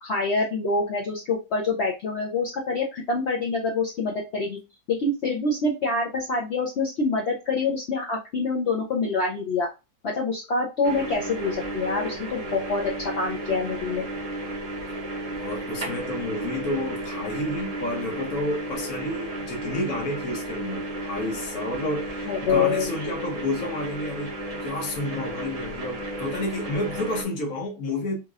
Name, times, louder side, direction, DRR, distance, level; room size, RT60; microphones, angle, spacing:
voice 1, 0.0-4.6 4.9-9.7 10.0-14.1 22.2-22.9, left 3 dB, 75° left, 0.6 m, -26 dB
sound 1, 10.8-27.2, right 1 dB, 90° right, 0.3 m, -33 dB
voice 2, 15.4-28.2, left 1 dB, 60° left, 1.2 m, -30 dB
2.9 x 2.9 x 2.3 m
omnidirectional pair, 1.8 m